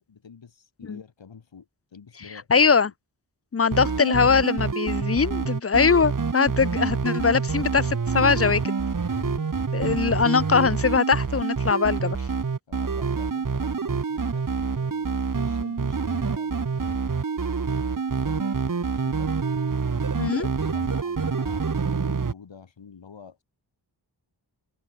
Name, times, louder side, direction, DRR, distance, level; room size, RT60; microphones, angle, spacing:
voice 1, 0.0-2.7 3.7-4.7 9.1-9.5 12.7-17.2 17.7-19.3 20.1-23.4, left 6 dB, 90° left, 4.0 m, -46 dB
voice 2, 2.5-2.9 3.5-8.6 9.7-12.2 20.2-20.5, left 5 dB, 35° left, 0.7 m, -21 dB
sound 1, 3.7-22.3, right 5 dB, 45° right, 1.8 m, -27 dB
open air
wide cardioid pair, 105°, 43 cm